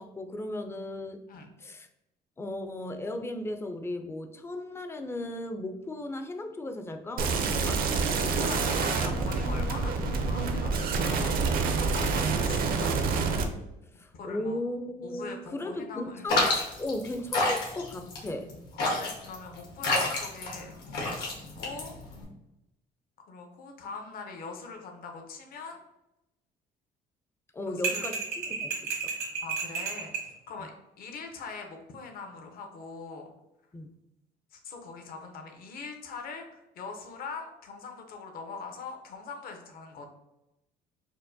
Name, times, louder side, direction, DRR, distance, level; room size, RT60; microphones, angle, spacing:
voice 1, 0.0-1.2 1.6-1.9 2.4-7.8 14.0-18.5 27.5-29.1 30.6-30.7 33.7-33.9, left 1 dB, 15° left, 6 dB, 0.4 m, -36 dB
sound 1, 7.2-13.4, right 4 dB, 60° right, 0.5 m, -27 dB
voice 2, 8.1-13.0 14.1-14.6 15.0-16.3 18.7-21.9 23.3-25.8 27.7-28.1 29.4-30.1 30.5-30.7 31.0-33.3 34.5-40.1, left 4 dB, 60° left, 3 dB, 0.7 m, -42 dB
sound 2, 16.3-22.2, left 2 dB, 80° left, 1.2 m, -29 dB
sound 3, 27.8-30.3, right 5 dB, 80° right, 1.0 m, -32 dB
4.4 x 2.1 x 2.6 m, 0.91 s
cardioid pair, 110°, 17 cm